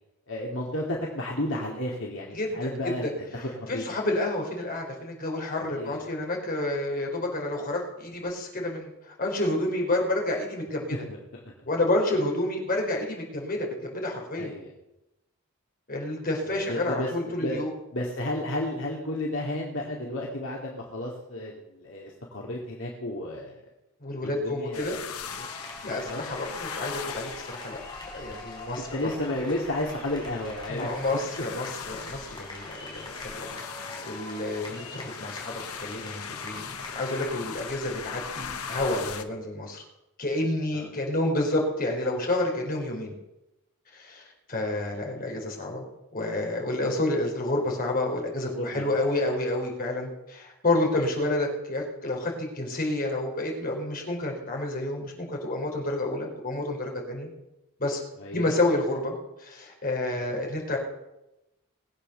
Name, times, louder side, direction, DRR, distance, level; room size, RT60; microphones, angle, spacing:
voice 1, 0.3-3.0 3.3-3.8 5.7-6.1 10.9-11.2 11.5-11.6 14.4-14.7 16.5-17.6 17.9-23.6 24.2-25.0 25.3-25.5 26.0-26.3 28.8-30.9 32.3-32.4 33.9-34.1 40.7-40.9 48.4-49.0 58.2-58.5 60.2-60.3, left 1 dB, 60° left, -2 dB, 2.5 m, -33 dB
voice 2, 2.3-2.8 3.0-10.9 11.6-14.5 15.9-17.7 24.0-24.9 25.8-28.9 30.7-39.8 40.2-43.1 43.9-45.9 46.1-57.3 57.8-58.0 58.3-60.8, left 2 dB, 40° left, 0 dB, 4.6 m, -29 dB
sound 1, 24.7-39.2, left 6 dB, 80° left, 1.3 m, -40 dB
sound 2, 25.3-37.3, left 2 dB, 20° left, 4.2 m, -43 dB
21.0 x 8.6 x 6.8 m, 0.94 s
head